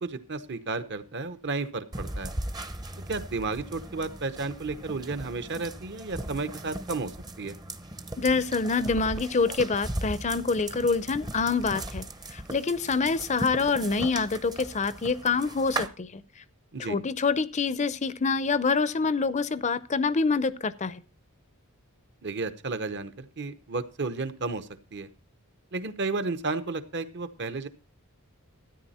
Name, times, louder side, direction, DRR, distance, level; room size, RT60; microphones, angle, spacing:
voice 1, 0.0-2.3 3.1-7.1 7.4-7.5 16.7-17.0 22.2-25.1 25.7-27.7, right 3 dB, 50° right, 1.0 m, -32 dB
sound 1, 1.9-15.9, right 1 dB, 20° right, 0.7 m, -38 dB
voice 2, 8.2-12.0 12.3-16.2 16.8-21.0, left 4 dB, 35° left, 0.6 m, -26 dB
13.0 x 9.6 x 4.2 m
head